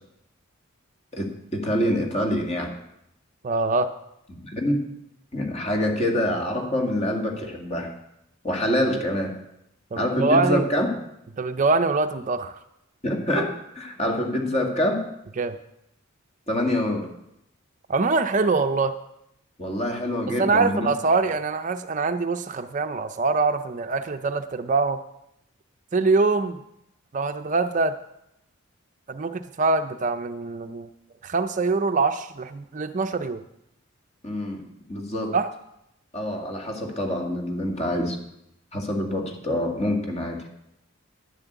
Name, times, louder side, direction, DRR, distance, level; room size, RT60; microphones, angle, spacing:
voice 1, 1.1-2.7 4.3-4.8 5.3-7.9 8.4-9.3 10.0-10.9 13.0-15.0 16.5-17.1 19.6-20.9 34.2-34.6 34.9-35.3 36.1-38.2 38.7-40.5, left 1 dB, 30° left, 2 dB, 2.0 m, -26 dB
voice 2, 3.4-3.9 9.9-10.7 11.4-12.5 15.4-15.6 17.9-18.9 20.4-25.0 25.9-26.6 27.1-27.9 29.1-30.9 31.2-33.4 35.3-35.5, right 3 dB, 35° right, 8 dB, 0.4 m, -24 dB
11.0 x 7.3 x 8.1 m, 0.82 s
head